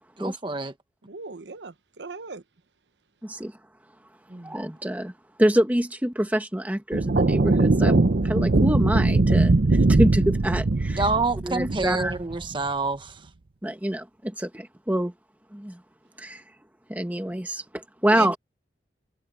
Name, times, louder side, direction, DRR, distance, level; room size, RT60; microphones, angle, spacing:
voice 1, 0.2-0.7 4.3-4.5 11.0-13.2, right 3 dB, 30° right, 1.3 m, -27 dB
voice 2, 1.0-2.4 18.1-18.4, right 4 dB, 85° right, 0.9 m, -38 dB
voice 3, 3.2-3.5 4.4-5.1 5.4-11.0 11.4-12.2 13.6-15.1 15.5-15.8 16.2-16.4 16.9-18.4, right 1 dB, 10° right, 1.2 m, -26 dB
sound 1, 6.9-12.5, right 2 dB, 60° right, 0.7 m, -21 dB
head